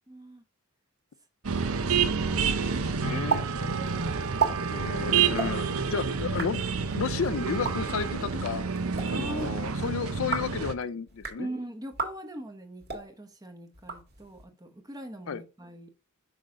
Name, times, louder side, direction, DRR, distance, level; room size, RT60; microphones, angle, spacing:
voice 1, 0.1-0.4 9.1-9.5 9.9-10.0 11.4-15.9, right 1 dB, 15° right, 0.9 m, -41 dB
sound 1, 1.4-10.7, right 6 dB, 75° right, 0.7 m, -29 dB
voice 2, 2.7-3.4 4.7-6.6 6.9-8.6 9.1-11.5 15.3-15.4, left 6 dB, 65° left, 0.4 m, -32 dB
sound 2, 3.3-3.4 3.7-3.8 4.2-4.5 5.3-5.5 6.2-6.5 7.5-7.7 8.7-9.1 10.1-10.5 11.1-11.4 11.9-12.1 12.8-13.0 13.7-14.4, right 5 dB, 45° right, 1.7 m, -31 dB
Run, 3.9-10.9, left 1 dB, 30° left, 0.7 m, -49 dB
6.1 x 5.1 x 3.7 m
head